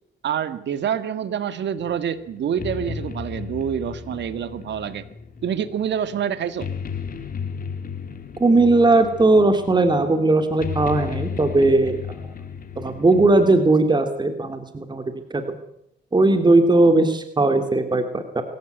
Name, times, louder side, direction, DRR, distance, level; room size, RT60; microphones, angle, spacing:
voice 1, 0.2-5.1 5.4-6.7, right 8 dB, 65° right, 12 dB, 1.8 m, -27 dB
sound 1, 1.8-13.6, left 6 dB, 45° left, 3.1 m, -34 dB
voice 2, 8.4-12.0 12.8-15.0 15.3-15.6 16.1-18.4, right 2 dB, 20° right, 7 dB, 2.9 m, -18 dB
24.5 x 15.0 x 9.4 m, 0.79 s
cardioid pair, 90°, 20 cm